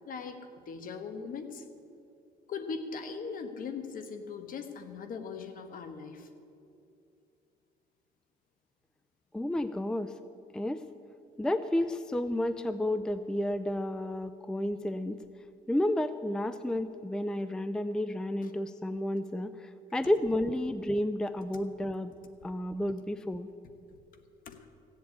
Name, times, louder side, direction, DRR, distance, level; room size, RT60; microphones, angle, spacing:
voice 1, 0.1-1.6 2.5-6.3 18.4-18.5 24.5-24.6, left 5 dB, 55° left, 8 dB, 1.3 m, -40 dB
voice 2, 9.3-10.1 10.5-10.8 11.4-15.2 15.7-22.1 22.4-23.5, left 1 dB, 5° left, 13 dB, 0.4 m, -31 dB
15.5 x 7.8 x 8.5 m, 2.6 s
cardioid pair, 110°, 17 cm